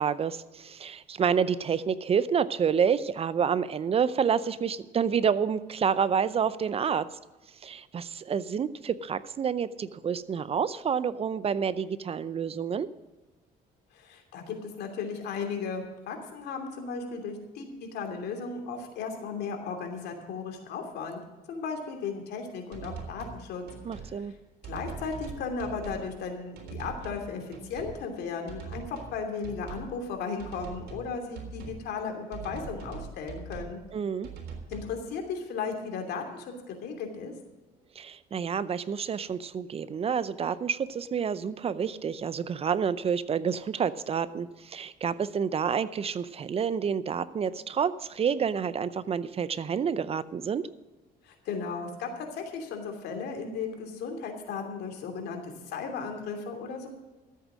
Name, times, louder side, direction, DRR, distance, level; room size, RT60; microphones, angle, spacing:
voice 1, 0.0-7.1 7.6-12.9 23.8-24.3 33.9-34.3 38.0-50.7, right 7 dB, 35° right, 16 dB, 0.6 m, -28 dB
voice 2, 13.9-21.2 21.5-23.6 24.0-24.3 24.6-33.8 34.7-37.3 51.2-56.9, left 5 dB, 75° left, 4 dB, 2.8 m, -36 dB
sound 1, 22.7-23.4 23.7-24.1 24.6-26.1 26.6-27.2 27.5-28.0 28.5-29.2 29.4-29.9 30.4-31.1 31.3-31.8 32.3-33.7 34.2-34.9, right 5 dB, 75° right, 3.7 m, -41 dB
14.0 x 8.3 x 6.2 m, 1.2 s
cardioid pair, 110°, 17 cm